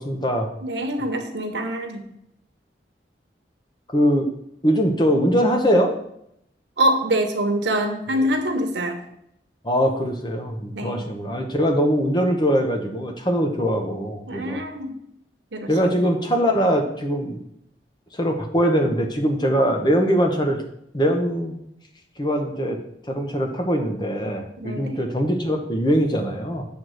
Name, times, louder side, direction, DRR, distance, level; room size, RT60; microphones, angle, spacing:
voice 1, 0.0-0.5 3.9-4.3 4.6-5.9 9.6-14.6 15.7-17.4 18.1-20.6 20.9-21.6 22.2-22.8 23.1-26.7, equal, 25° left, 3 dB, 1.0 m, -22 dB
voice 2, 0.6-2.0 6.8-9.0 10.7-11.0 14.3-15.0 15.5-16.1 24.6-25.0, right 1 dB, 90° right, 5 dB, 1.1 m, -25 dB
7.8 x 3.5 x 6.4 m, 0.74 s
head